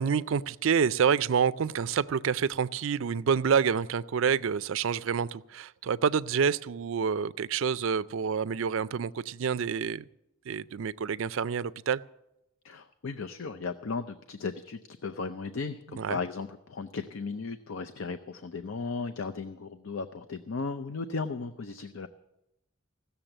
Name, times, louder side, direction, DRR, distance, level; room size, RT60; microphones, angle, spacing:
voice 1, 0.0-10.0 10.5-12.0 16.0-16.2, right 6 dB, 65° right, 16 dB, 0.4 m, -28 dB
voice 2, 12.6-22.1, left 4 dB, 65° left, 10 dB, 0.6 m, -36 dB
16.0 x 6.9 x 8.9 m, 0.88 s
head